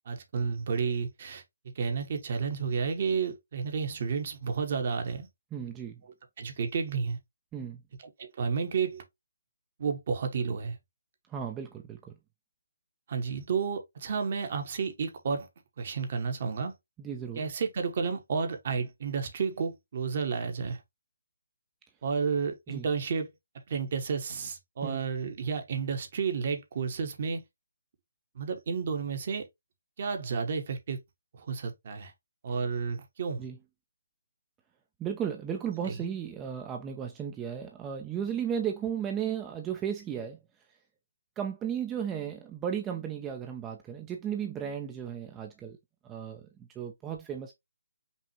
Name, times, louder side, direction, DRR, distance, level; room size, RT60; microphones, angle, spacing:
voice 1, 0.1-1.4 1.7-5.3 6.4-7.2 8.0-9.0 9.8-10.8 13.1-15.5 15.8-16.7 17.4-20.8 22.0-23.3 23.7-27.4 28.3-29.5 30.0-31.0 31.3-32.1 32.4-33.4 35.8-36.0, right 5 dB, 45° right, 1.0 m, -31 dB
voice 2, 5.5-6.0 7.5-7.8 11.3-12.2 17.0-17.5 22.7-22.9 24.8-25.0 33.4-33.6 35.0-40.4 41.4-45.8 46.0-47.5, right 8 dB, 15° right, 0.4 m, -35 dB
5.4 x 2.5 x 2.8 m
figure-of-eight pair, 145°, 0 cm